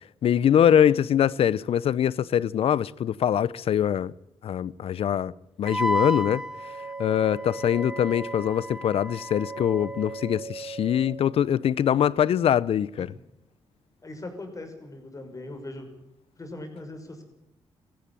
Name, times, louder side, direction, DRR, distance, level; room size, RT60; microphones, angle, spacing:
voice 1, 0.2-4.1 4.4-5.3 5.6-6.4 7.0-13.1, left 9 dB, 70° left, 0.6 m, -23 dB
Wind instrument woodwind instrument, 5.7-10.3, equal, 5° right, 1.0 m, -33 dB
sound 1, 6.4-11.4, right 4 dB, 80° right, 4.6 m, -40 dB
voice 2, 14.0-15.9 16.4-17.2, left 2 dB, 35° left, 6.0 m, -40 dB
17.5 x 15.0 x 9.9 m
cardioid pair, 65°, 10 cm